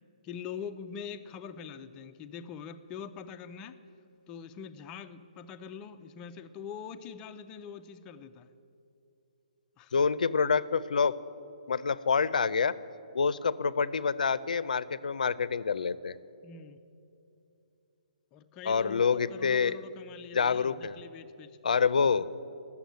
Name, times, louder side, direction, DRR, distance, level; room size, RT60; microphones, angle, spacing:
voice 1, 0.2-3.8 4.3-8.5 9.8-9.9 16.4-16.8 18.3-21.8, left 7 dB, 15° left, 8 dB, 0.4 m, -44 dB
voice 2, 9.9-11.2 11.7-12.7 13.1-16.1 18.7-19.8 20.3-21.0 21.6-22.3, left 5 dB, 80° left, 17 dB, 0.5 m, -27 dB
13.0 x 7.1 x 9.2 m, 2.7 s
hypercardioid pair, 165°, 4 cm